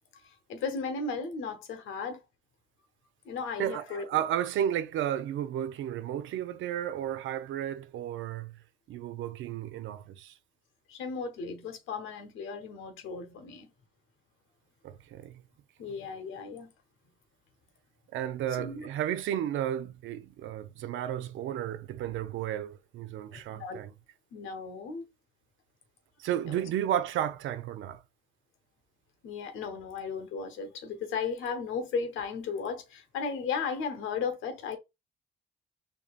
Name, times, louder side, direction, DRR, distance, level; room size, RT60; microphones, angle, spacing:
voice 1, 0.1-2.2 3.2-4.2 10.9-13.7 15.8-16.7 18.6-18.9 23.3-23.8 24.3-25.1 26.4-26.7 29.2-34.8, left 5 dB, 85° left, 0.9 m, -35 dB
voice 2, 3.6-8.6 8.9-10.3 14.8-15.4 18.1-23.9 26.2-28.0, right 10 dB, 75° right, 0.5 m, -33 dB
4.7 x 2.7 x 2.4 m
cardioid pair, 90°, 20 cm